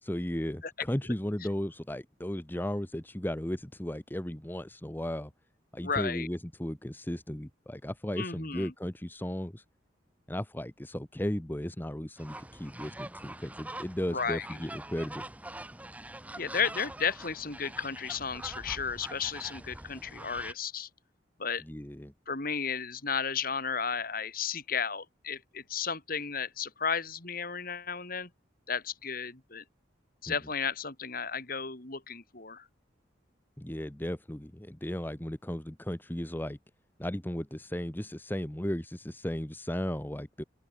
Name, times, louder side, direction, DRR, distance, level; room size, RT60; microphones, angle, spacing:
voice 1, 0.1-5.3 5.7-9.6 10.3-15.2 21.7-22.1 30.3-30.4 33.6-36.6 37.0-40.4, left 1 dB, 10° left, 0.9 m, -35 dB
voice 2, 5.8-6.3 8.2-8.7 14.1-14.5 16.4-20.9 21.4-21.6 22.3-28.3 28.7-29.6 30.2-32.7, left 6 dB, 50° left, 3.1 m, -33 dB
sound 1, 12.2-20.5, right 1 dB, 10° right, 1.5 m, -44 dB
open air
head